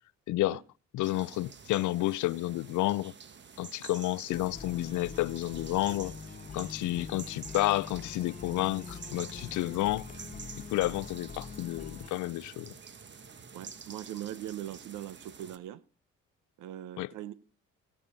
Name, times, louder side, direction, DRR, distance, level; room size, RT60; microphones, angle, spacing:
voice 1, 0.3-0.6 0.9-3.1 3.6-6.1 6.5-10.0 10.7-12.7 17.0-17.1, left 17 dB, 80° left, 0.5 m, -30 dB
sound 1, 1.0-15.6, right 6 dB, 40° right, 1.1 m, -49 dB
sound 2, 4.3-12.1, left 6 dB, 30° left, 0.6 m, -44 dB
voice 2, 13.5-15.8 16.6-17.3, right 12 dB, 90° right, 0.9 m, -41 dB
17.5 x 6.8 x 5.5 m
cardioid pair, 90°, 30 cm